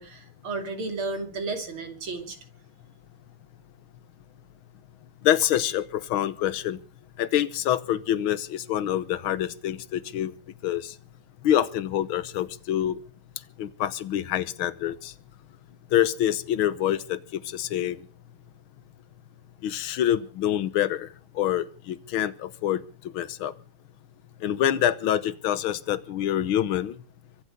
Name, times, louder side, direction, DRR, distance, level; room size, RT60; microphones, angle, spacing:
voice 1, 0.0-2.4, right 3 dB, 80° right, 6 dB, 3.7 m, -33 dB
voice 2, 5.2-6.8 7.2-10.3 10.6-10.9 11.4-13.0 13.6-15.1 15.9-18.0 19.6-21.1 21.3-22.8 23.1-23.5 24.4-27.0, left 11 dB, 80° left, 15 dB, 1.8 m, -26 dB
24.5 x 8.3 x 6.6 m, 0.39 s
omnidirectional pair, 2.3 m